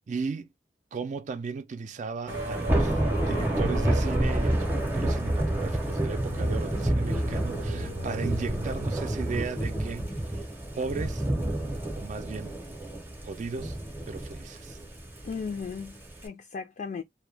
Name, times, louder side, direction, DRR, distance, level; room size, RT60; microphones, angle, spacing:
voice 1, 0.1-0.5 0.9-3.0 3.2-10.2 10.8-11.2 12.0-12.5 13.2-13.8 14.1-14.8, right 4 dB, 45° right, 0.3 m, -35 dB
Thunder / Rain, 2.3-16.3, right 1 dB, 10° right, 0.6 m, -29 dB
Singing, 2.3-9.6, right 1 dB, 90° right, 0.8 m, -39 dB
voice 2, 15.2-17.0, left 5 dB, 45° left, 0.3 m, -36 dB
2.2 x 2.1 x 3.1 m
head